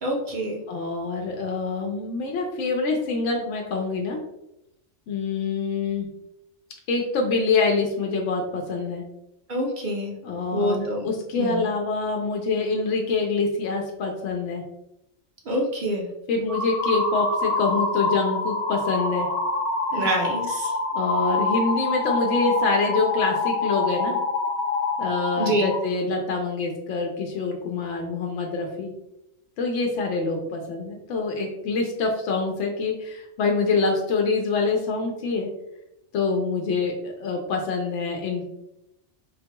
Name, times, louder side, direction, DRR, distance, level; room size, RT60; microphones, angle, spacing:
voice 1, 0.0-0.6 9.5-10.2 10.5-11.1 11.4-11.7 15.5-16.1 19.9-20.7 25.4-25.7, right 1 dB, 50° right, -1 dB, 0.7 m, -26 dB
voice 2, 0.7-4.2 5.1-6.1 6.9-9.0 10.2-14.6 16.3-19.3 19.9-20.1 20.9-24.2 25.0-28.9 29.6-35.5 36.1-38.4, left 4 dB, 85° left, 1 dB, 0.9 m, -25 dB
sound 1, 16.5-25.8, left 3 dB, 60° left, 1.0 m, -26 dB
3.8 x 2.2 x 2.8 m, 0.86 s
omnidirectional pair, 1.2 m